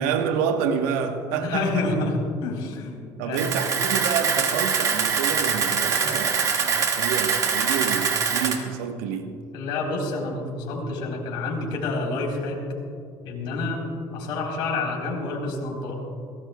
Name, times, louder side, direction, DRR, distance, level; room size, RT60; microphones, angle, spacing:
voice 1, 0.0-1.9 3.2-9.3, right 7 dB, 90° right, 1.3 m, -28 dB
voice 2, 1.4-3.9 9.5-12.6 13.2-13.8 14.1-16.1, left 3 dB, 70° left, 4.0 m, -28 dB
Camera, 3.3-8.6, right 6 dB, 45° right, 1.9 m, -24 dB
21.5 x 18.0 x 2.3 m
supercardioid pair, 100°, 8 cm